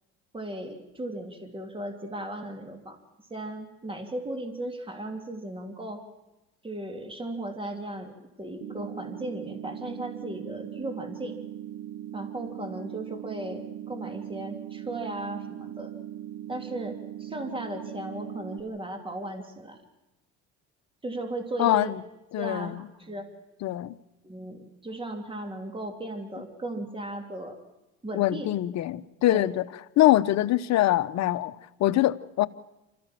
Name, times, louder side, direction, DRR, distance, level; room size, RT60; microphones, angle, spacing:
voice 1, 0.3-3.0 3.3-6.0 6.6-8.1 8.4-11.4 12.1-15.9 16.5-19.8 21.0-21.9 22.3-23.3 24.2-27.6 28.0-28.5 29.2-29.5, right 1 dB, 15° right, 3.1 m, -36 dB
sound 1, 8.6-18.6, right 11 dB, 65° right, 0.9 m, -40 dB
voice 2, 21.6-22.0 22.3-22.8 23.6-23.9 28.1-29.6 30.0-32.5, left 14 dB, 60° left, 0.9 m, -24 dB
27.0 x 14.0 x 7.6 m
supercardioid pair, 85°, 32 cm